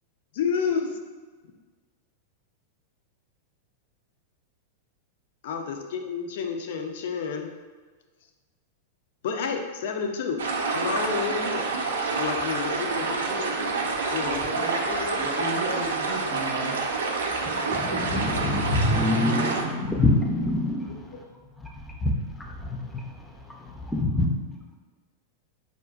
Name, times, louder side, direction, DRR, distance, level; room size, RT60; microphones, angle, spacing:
voice 1, 0.3-1.0 5.4-7.5 9.2-10.4 10.7-11.8 12.1-14.4 14.9-15.3 18.1-18.4 21.1-21.2, left 6 dB, 65° left, 4 dB, 0.4 m, -30 dB
sound 1, 10.4-19.6, right 4 dB, 80° right, 0.3 m, -28 dB
voice 2, 14.1-14.8 15.1-16.8, right 1 dB, 85° left, -6 dB, 1.3 m, -34 dB
voice 3, 17.7-20.9 22.0-22.1 22.6-22.8 23.9-24.3, left 1 dB, 10° left, 0 dB, 0.4 m, -24 dB
3.7 x 2.4 x 2.3 m, 1.4 s
hypercardioid pair, 100°, 0 cm